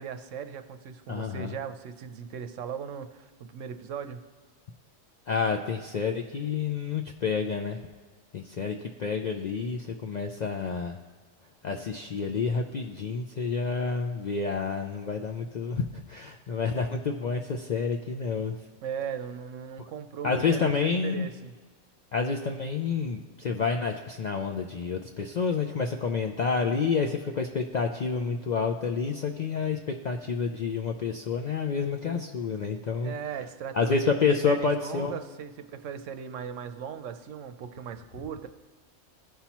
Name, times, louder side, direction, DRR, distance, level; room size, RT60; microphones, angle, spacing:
voice 1, 0.0-4.2 18.8-21.5 33.0-34.1 34.4-38.5, right 7 dB, 80° right, 9 dB, 1.0 m, -38 dB
voice 2, 1.1-1.6 5.3-7.8 8.3-11.0 11.6-18.6 20.2-21.3 22.1-33.1 33.7-35.1, left 5 dB, 65° left, 3 dB, 0.4 m, -29 dB
15.5 x 5.6 x 3.0 m, 1.4 s
omnidirectional pair, 1.3 m